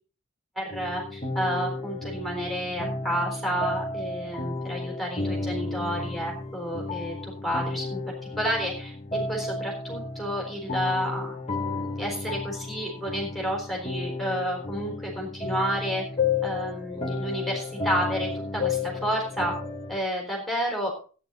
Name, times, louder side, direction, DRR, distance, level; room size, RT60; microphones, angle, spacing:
voice 1, 0.6-8.9 9.3-16.0 16.4-19.5 19.9-20.9, equal, ahead, -2 dB, 4.0 m, -30 dB
sound 1, 0.7-20.0, left 3 dB, 30° left, 1.3 m, -32 dB
14.5 x 9.7 x 4.0 m, 0.37 s
head